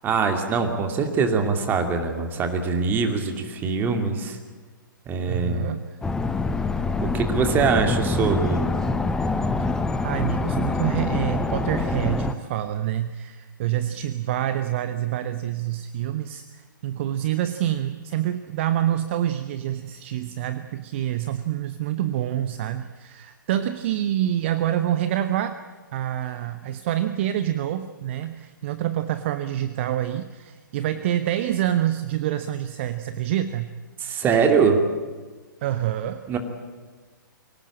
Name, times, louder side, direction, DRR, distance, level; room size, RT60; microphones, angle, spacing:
voice 1, 0.0-4.4 5.1-5.7 7.0-8.7 34.0-34.8 36.3-36.4, right 5 dB, 15° right, 5 dB, 2.5 m, -23 dB
voice 2, 5.3-5.8 7.8-7.9 10.0-25.6 25.9-33.7 35.6-36.2, right 12 dB, 35° right, 11 dB, 0.9 m, -27 dB
sound 1, 6.0-12.3, left 3 dB, 5° left, 0.8 m, -25 dB
23.5 x 17.5 x 8.8 m, 1.4 s
figure-of-eight pair, 120°, 11 cm